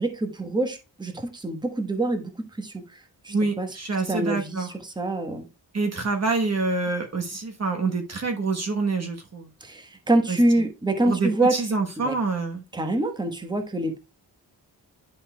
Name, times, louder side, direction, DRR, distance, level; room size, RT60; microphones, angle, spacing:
voice 1, 0.0-2.3 2.6-3.7 4.1-5.5 9.6-11.6 12.0-12.1 12.7-14.0, right 2 dB, 10° right, 1.2 m, -26 dB
voice 2, 3.3-4.7 5.7-9.5 10.3-10.4 11.1-12.6, right 3 dB, 40° right, 1.1 m, -26 dB
10.5 x 5.4 x 2.2 m
wide cardioid pair, 105°, 40 cm